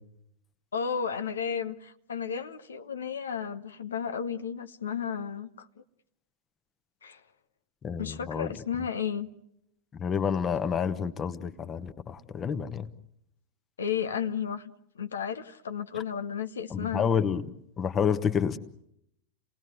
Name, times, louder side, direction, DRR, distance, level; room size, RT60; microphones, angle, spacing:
voice 1, 0.7-5.7 7.0-7.2 8.0-9.3 13.8-17.0, left 7 dB, 70° left, 8 dB, 1.0 m, -33 dB
voice 2, 7.8-8.5 10.0-12.9 16.7-17.5 17.8-18.6, left 7 dB, 25° left, 11 dB, 1.3 m, -29 dB
29.5 x 18.5 x 9.4 m, 0.80 s
figure-of-eight pair, 90°, 0 cm